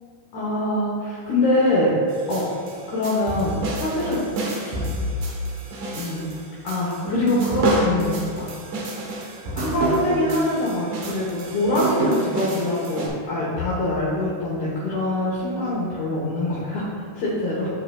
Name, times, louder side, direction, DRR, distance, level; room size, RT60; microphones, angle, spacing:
voice 1, 0.3-1.9 2.3-2.4 2.9-4.8 5.9-6.3 6.6-8.5 9.6-17.7, left 1 dB, 65° left, -7 dB, 2.0 m, -24 dB
sound 1, 2.1-13.1, right 1 dB, 65° right, 2.4 m, -28 dB
12.0 x 4.6 x 2.3 m, 2.2 s
omnidirectional pair, 4.8 m